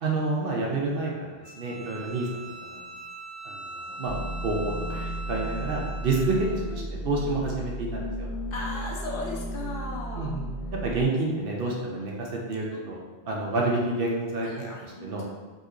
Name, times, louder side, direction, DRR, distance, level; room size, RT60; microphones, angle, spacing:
voice 1, 0.0-2.3 2.6-2.8 3.4-4.2 4.4-5.0 5.3-6.4 6.7-8.3 10.1-10.4 10.8-13.0 13.3-14.5 15.0-15.2, right 3 dB, 60° right, -2 dB, 0.7 m, -29 dB
Bowed string instrument, 1.4-6.6, right 2 dB, 25° right, 0.4 m, -41 dB
Ominous and Deep Ambience, 4.0-11.1, right 1 dB, 30° left, 1.0 m, -34 dB
voice 2, 6.4-6.9 8.5-10.4 12.7-12.8 14.4-15.2, left 2 dB, 60° left, -2 dB, 0.7 m, -37 dB
4.0 x 2.8 x 2.4 m, 1.3 s
omnidirectional pair, 1.1 m